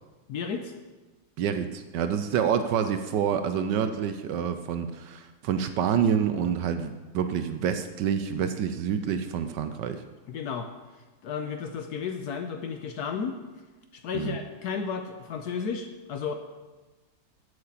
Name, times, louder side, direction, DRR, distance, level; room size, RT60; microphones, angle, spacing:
voice 1, 0.3-0.7 10.3-10.7 11.2-13.4 13.9-16.4, left 6 dB, 65° left, 6 dB, 1.0 m, -33 dB
voice 2, 1.4-10.0 14.1-14.3, right 8 dB, 75° right, 9 dB, 1.1 m, -27 dB
8.0 x 6.7 x 7.2 m, 1.2 s
omnidirectional pair, 2.1 m